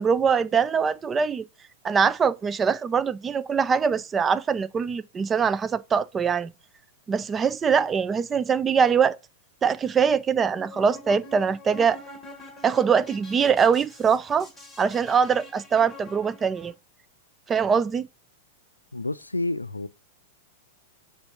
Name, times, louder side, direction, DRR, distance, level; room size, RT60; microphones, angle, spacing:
voice 1, 0.0-1.5 1.8-6.5 7.1-9.2 9.6-12.0 12.6-14.5 14.8-16.7 17.5-18.1, right 6 dB, 20° right, 0.4 m, -23 dB
sound 1, 10.6-16.7, left 2 dB, 10° left, 2.2 m, -45 dB
voice 2, 18.9-19.9, left 2 dB, 85° left, 0.4 m, -29 dB
6.9 x 2.5 x 5.3 m
figure-of-eight pair, 95°, 0 cm